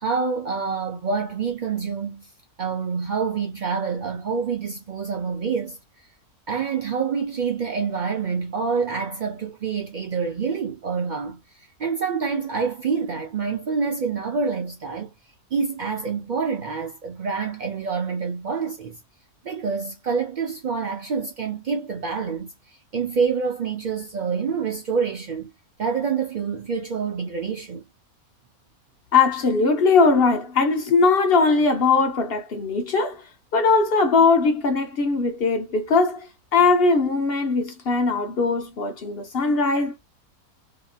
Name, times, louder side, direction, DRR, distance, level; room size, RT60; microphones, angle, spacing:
voice 1, 0.0-2.3 2.6-5.8 6.5-15.1 15.5-19.0 19.4-25.5 25.8-27.8, right 5 dB, 75° right, 0.4 m, -27 dB
voice 2, 29.1-33.2 33.5-40.0, left 4 dB, 55° left, 0.7 m, -20 dB
2.8 x 2.7 x 2.3 m
omnidirectional pair, 1.6 m